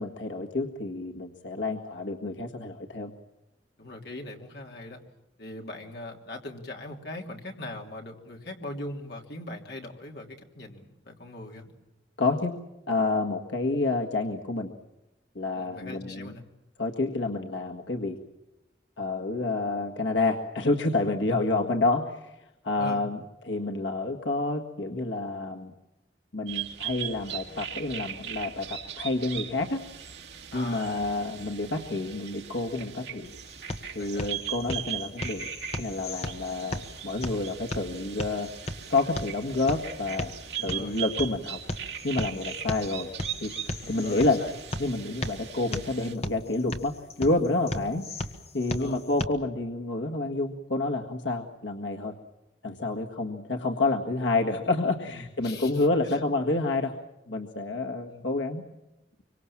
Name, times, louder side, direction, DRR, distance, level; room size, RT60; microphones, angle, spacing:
voice 1, 0.0-3.1 12.2-12.5 12.9-14.7 15.4-16.3 16.8-18.2 19.0-22.3 22.6-25.7 26.3-29.8 30.5-33.3 34.0-35.5 35.8-38.5 38.9-40.3 40.6-41.6 42.0-43.1 43.4-44.4 44.8-48.0 48.5-52.2 52.6-56.9 57.3-58.6, left 2 dB, 85° left, 2 dB, 1.7 m, -29 dB
voice 2, 3.8-5.0 5.4-11.7 15.5-16.4 21.0-21.2 22.8-23.0 30.5-31.1 34.0-34.4 40.6-41.0 43.8-44.5 47.8-47.9 48.8-49.0 55.1-56.2 58.1-58.3, left 1 dB, 60° left, 1 dB, 3.2 m, -41 dB
sound 1, 26.5-46.1, right 9 dB, 65° right, 2.3 m, -39 dB
sound 2, 33.2-49.2, left 1 dB, 35° left, 1.5 m, -37 dB
25.5 x 24.5 x 7.3 m, 0.96 s
head